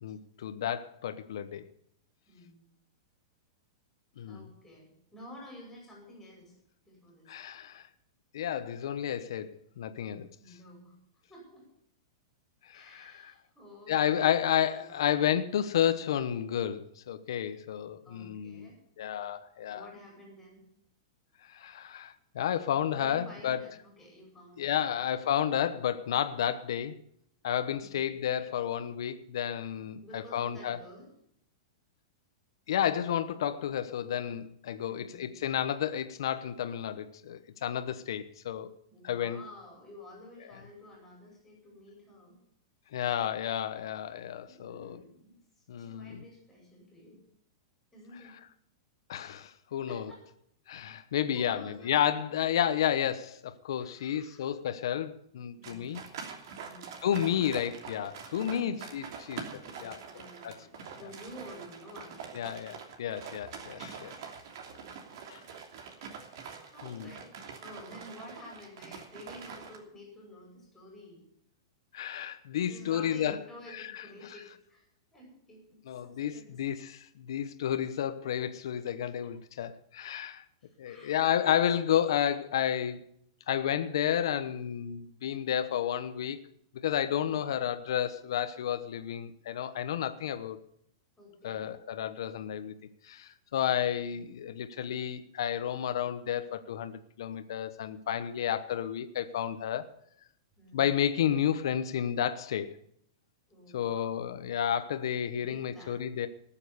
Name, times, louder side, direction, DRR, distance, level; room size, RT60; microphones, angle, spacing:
voice 1, 0.0-1.6 4.2-4.4 7.3-7.9 8.3-10.3 12.6-13.3 13.9-18.7 19.0-19.9 21.4-23.7 24.6-27.0 27.4-30.8 32.7-38.7 39.0-39.4 42.9-45.0 45.7-46.2 49.1-50.0 50.7-56.0 57.0-60.5 62.3-64.1 65.3-65.4 66.8-67.1 71.9-73.4 73.7-74.0 75.9-80.4 80.8-83.0 83.5-86.4 86.7-90.6 91.4-92.7 93.0-99.9 100.7-102.8 103.7-106.3, left 10 dB, 70° left, 1.0 m, -31 dB
voice 2, 2.3-2.6 4.2-6.5 6.8-7.4 9.9-11.0 11.3-11.7 12.7-14.3 14.7-15.3 18.0-18.8 19.7-20.6 22.9-25.0 30.0-31.1 34.9-35.4 38.9-42.4 44.5-47.2 47.9-48.4 49.9-50.2 51.3-51.9 53.8-54.5 55.6-55.9 56.6-57.0 58.3-58.8 59.7-62.5 63.1-63.3 64.5-65.2 66.0-67.3 67.6-71.2 72.7-76.6 80.6-81.5 87.3-87.6 91.2-91.7 100.6-100.9 103.5-104.2 105.4-106.0, left 1 dB, 5° left, 5.5 m, -51 dB
sound 1, 55.6-69.8, right 6 dB, 55° right, 2.9 m, -45 dB
19.0 x 7.2 x 7.0 m
supercardioid pair, 155°, 2 cm